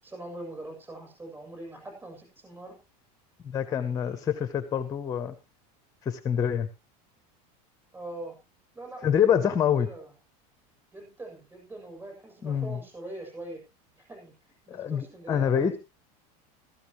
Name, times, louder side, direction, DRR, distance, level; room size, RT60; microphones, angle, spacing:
voice 1, 0.0-2.7 3.6-4.3 7.9-8.4 8.7-10.1 10.9-13.6 14.0-14.3 14.7-15.8, right 2 dB, 10° right, 2 dB, 7.4 m, -43 dB
voice 2, 3.5-5.3 6.0-6.7 9.0-9.9 12.4-12.8 14.7-15.7, left 8 dB, 15° left, 11 dB, 0.7 m, -26 dB
15.5 x 14.5 x 3.0 m, 0.27 s
supercardioid pair, 165°, 19 cm